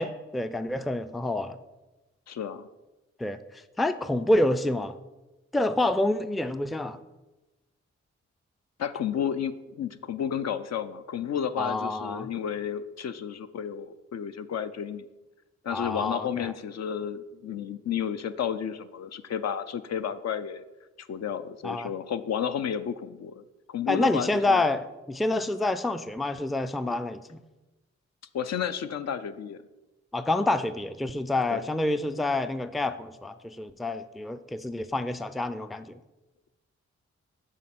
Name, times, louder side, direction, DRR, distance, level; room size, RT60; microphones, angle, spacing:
voice 1, 0.0-1.6 3.2-5.0 5.5-7.0 11.6-12.3 15.7-16.5 21.6-21.9 23.9-27.4 30.1-36.0, left 2 dB, ahead, 11 dB, 0.3 m, -28 dB
voice 2, 2.3-2.7 8.8-15.0 15.6-20.6 21.0-24.6 28.3-29.6 31.5-31.6, left 8 dB, 65° left, 11 dB, 0.5 m, -32 dB
6.4 x 3.6 x 5.8 m, 1.1 s
cardioid pair, 45°, 29 cm